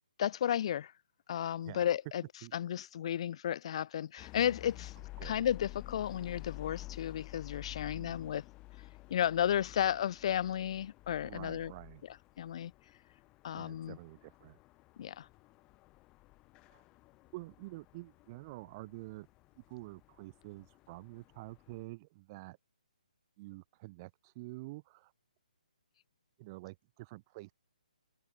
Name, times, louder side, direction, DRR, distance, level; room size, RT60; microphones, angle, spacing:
voice 1, 0.2-0.9 1.3-2.2 2.5-4.9 5.2-8.4 9.1-11.7 12.1-12.7 13.4-14.0 15.0-15.3, left 10 dB, 40° left, 2.8 m, -33 dB
sound 1, 4.2-21.8, left 20 dB, 20° left, 5.7 m, -51 dB
voice 2, 7.9-8.2 11.2-12.0 13.5-14.6 16.7-16.8 17.3-19.3 19.7-22.6 23.4-25.1 26.4-27.5, right 22 dB, 25° right, 5.9 m, -48 dB
hypercardioid pair, 160°, 5 cm